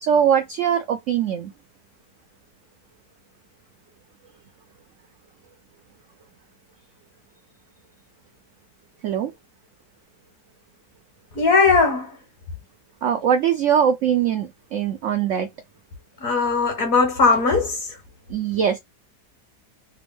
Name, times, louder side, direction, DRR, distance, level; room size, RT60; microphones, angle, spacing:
voice 1, 0.0-1.5 9.0-9.3 13.0-15.5 18.3-18.8, right 8 dB, 75° right, 0.7 m, -21 dB
voice 2, 11.3-12.2 16.2-17.9, left 4 dB, 60° left, 1.5 m, -19 dB
3.4 x 2.2 x 3.5 m
omnidirectional pair, 1.8 m